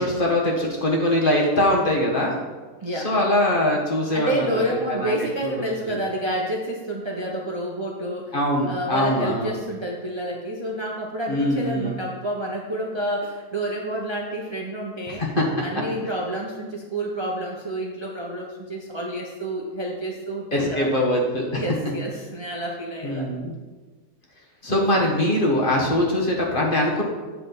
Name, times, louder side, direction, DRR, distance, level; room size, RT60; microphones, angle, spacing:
voice 1, 0.0-2.3 3.0-4.6 5.0-5.1 5.8-6.0 8.3-9.5 11.3-12.0 15.2-15.4 20.5-21.6 23.0-23.5 24.6-27.0, left 1 dB, 35° left, -2 dB, 1.4 m, -22 dB
voice 2, 2.8-3.3 4.1-8.3 8.7-15.2 15.6-20.9 21.5-23.4, right 1 dB, 25° right, -2 dB, 0.7 m, -29 dB
8.1 x 6.3 x 3.9 m, 1.3 s
omnidirectional pair, 1.6 m